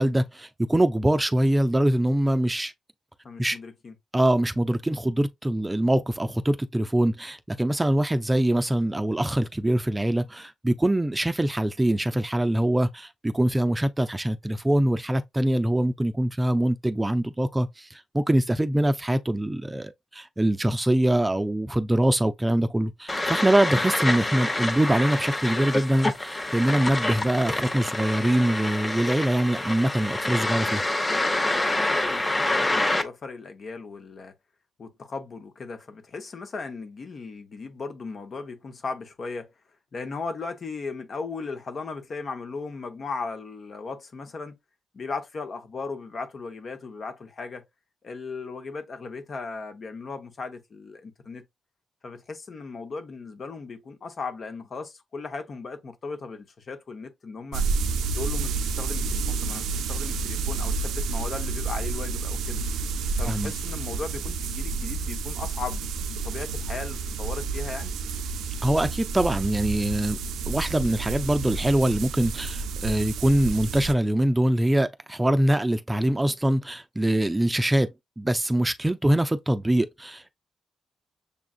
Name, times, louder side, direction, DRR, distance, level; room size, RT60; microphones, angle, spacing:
voice 1, 0.0-2.7 3.4-3.6 4.1-30.8 63.2-63.5 68.6-70.2 70.5-77.9 78.2-80.3, right 1 dB, 15° right, 0.4 m, -23 dB
voice 2, 3.2-3.9 31.7-34.3 34.8-39.5 39.9-44.6 44.9-47.6 48.0-51.4 52.0-57.6 58.1-62.6 63.2-67.9, left 4 dB, 55° left, 1.0 m, -37 dB
sound 1, 23.1-33.0, left 2 dB, 25° left, 0.8 m, -27 dB
sound 2, 57.5-73.9, right 4 dB, 90° right, 0.4 m, -30 dB
6.8 x 2.4 x 2.4 m
cardioid pair, 65°, 0 cm